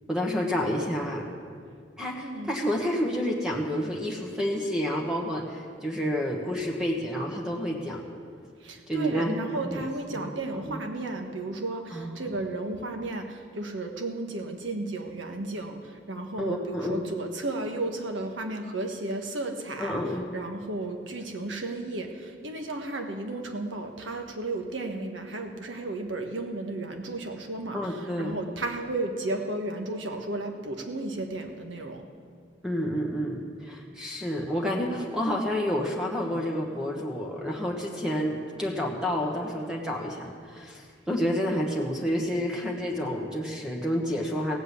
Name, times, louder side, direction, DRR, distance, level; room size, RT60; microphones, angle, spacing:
voice 1, 0.1-1.3 2.0-8.1 8.9-10.4 10.6-10.8 11.9-12.4 16.4-17.0 19.8-20.3 27.7-28.4 32.6-44.6, equal, 5° right, -1 dB, 1.2 m, -29 dB
voice 2, 8.6-20.0 20.3-32.0, right 2 dB, 80° right, 4 dB, 1.4 m, -33 dB
17.0 x 7.8 x 8.2 m, 2.1 s
head